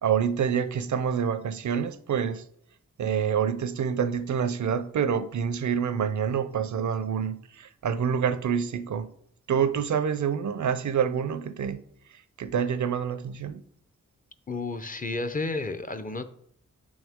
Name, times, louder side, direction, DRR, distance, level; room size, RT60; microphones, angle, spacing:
voice 1, 0.0-2.4 3.0-9.1 9.5-11.8 12.4-13.6, right 7 dB, 65° right, 0.6 m, -27 dB
voice 2, 14.5-16.2, left 3 dB, 25° left, 0.6 m, -31 dB
6.2 x 6.0 x 3.6 m
cardioid pair, 60°, 31 cm